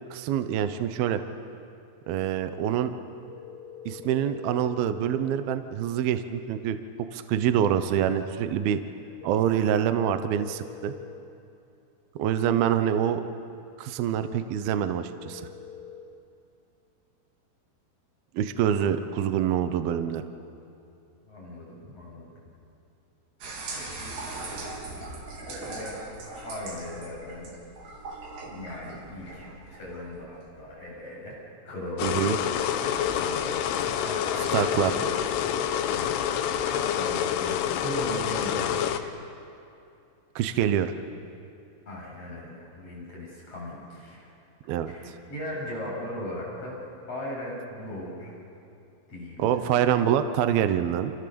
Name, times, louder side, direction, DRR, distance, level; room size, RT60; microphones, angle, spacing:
voice 1, 0.1-1.2 2.1-2.9 3.9-6.8 7.1-8.8 9.2-10.9 12.2-13.2 13.8-15.4 18.3-20.2 32.0-32.4 34.5-35.0 40.4-40.9 44.7-45.1 49.4-51.1, right 9 dB, 75° right, 9 dB, 2.2 m, -25 dB
sound 1, 3.3-5.2 9.2-11.2 15.2-16.0, left 8 dB, 55° left, 2.0 m, -44 dB
voice 2, 21.3-22.3 23.7-26.0 26.4-27.5 28.4-31.4 31.6-35.1 35.9-39.1 41.9-44.3 44.9-46.8 47.1-48.4 49.1-49.8, left 1 dB, 30° left, -5 dB, 9.0 m, -38 dB
sound 2, 23.4-30.6, right 3 dB, 55° right, 5.3 m, -40 dB
sound 3, 32.0-39.0, left 9 dB, 80° left, 3.5 m, -27 dB
29.5 x 28.0 x 7.0 m, 2.6 s
omnidirectional pair, 5.6 m